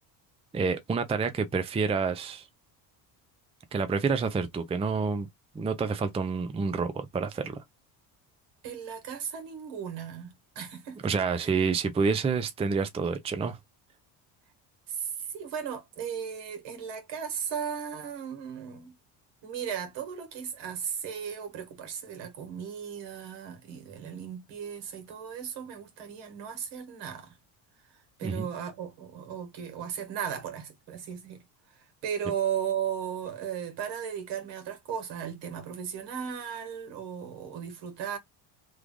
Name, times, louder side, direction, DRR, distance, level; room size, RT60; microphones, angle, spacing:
voice 1, 0.5-2.5 3.7-5.3 5.5-7.6 11.0-13.6 28.2-28.5, right 5 dB, 15° right, 0.5 m, -28 dB
voice 2, 8.6-11.1 11.4-11.5 14.9-19.0 19.4-27.4 27.9-31.4 31.7-38.2, right 8 dB, 70° right, 1.5 m, -36 dB
3.2 x 2.5 x 3.5 m
cardioid pair, 105°, 44 cm